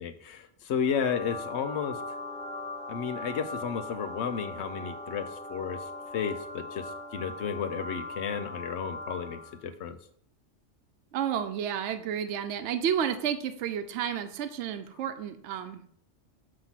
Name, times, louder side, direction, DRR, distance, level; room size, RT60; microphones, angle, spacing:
voice 1, 0.0-2.0 2.9-5.8 6.1-6.8 7.1-10.0, left 7 dB, 70° left, 9 dB, 0.9 m, -32 dB
sound 1, 0.8-9.6, left 2 dB, 10° left, 0.4 m, -40 dB
voice 2, 11.1-15.8, right 9 dB, 70° right, 9 dB, 0.9 m, -31 dB
7.4 x 3.0 x 5.6 m, 0.62 s
omnidirectional pair, 1.2 m